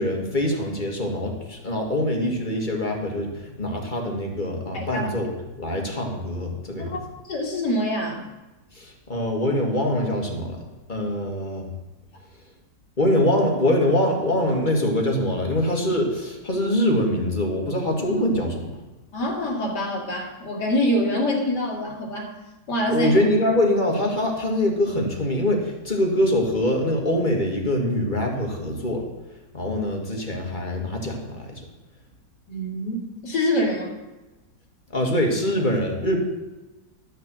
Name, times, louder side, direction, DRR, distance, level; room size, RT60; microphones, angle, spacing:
voice 1, 0.0-5.3 5.6-7.0 8.7-10.6 10.9-11.7 13.0-18.7 22.9-29.1 29.5-31.6 34.9-36.2, left 1 dB, 30° left, 1 dB, 2.0 m, -24 dB
voice 2, 7.2-8.2 19.1-22.3 22.7-23.2 32.5-33.9, equal, 80° left, -1 dB, 2.8 m, -25 dB
12.5 x 6.8 x 7.6 m, 1.1 s
omnidirectional pair, 1.8 m